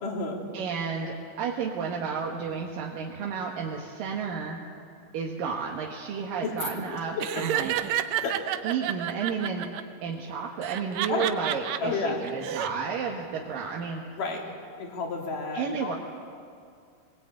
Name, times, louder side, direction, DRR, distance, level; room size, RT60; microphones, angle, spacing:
voice 1, 0.0-0.4 6.4-6.5 6.8-6.9 7.2-7.4 8.2-8.4 11.1-11.3 11.8-12.2 14.2-14.5 14.8-16.0, left 4 dB, 75° left, 0 dB, 4.3 m, -31 dB
voice 2, 0.5-4.6 5.1-7.8 8.6-9.7 10.0-14.0 15.5-16.0, right 6 dB, 90° right, -1 dB, 3.1 m, -32 dB
Laughter, 7.2-9.8 10.6-11.8 12.3-12.7, right 11 dB, 70° right, 1.8 m, -30 dB
21.0 x 20.0 x 8.9 m, 2.3 s
omnidirectional pair, 3.8 m